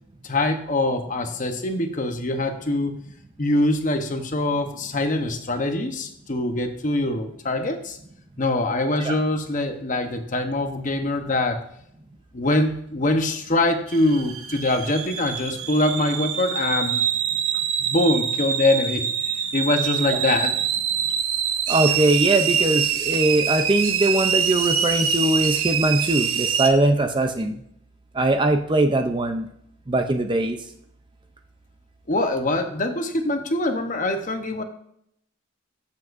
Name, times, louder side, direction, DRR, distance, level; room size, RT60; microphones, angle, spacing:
voice 1, 0.2-2.9 3.4-8.0 8.4-11.6 12.3-17.1 17.8-19.0 19.5-20.5 32.1-34.6, left 2 dB, 35° left, 6 dB, 0.9 m, -23 dB
sound 1, 13.9-26.7, right 7 dB, 70° right, 0.9 m, -25 dB
voice 2, 21.7-27.5 28.2-29.5 29.9-30.6, right 2 dB, 20° right, 6 dB, 0.5 m, -21 dB
14.0 x 7.3 x 2.6 m, 0.71 s
head